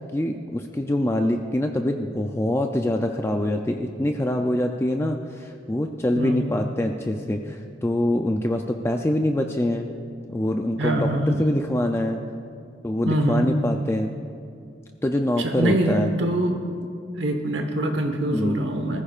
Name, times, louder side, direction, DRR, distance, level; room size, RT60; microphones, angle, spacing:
voice 1, 0.1-9.9 10.3-12.2 12.8-14.1 15.0-16.1 18.3-18.6, left 1 dB, 15° left, 4 dB, 0.4 m, -24 dB
voice 2, 6.1-6.4 10.8-11.4 13.0-13.5 15.4-16.6 17.1-19.0, right 1 dB, 75° right, 4 dB, 1.2 m, -24 dB
20.5 x 14.5 x 2.4 m, 2.4 s
head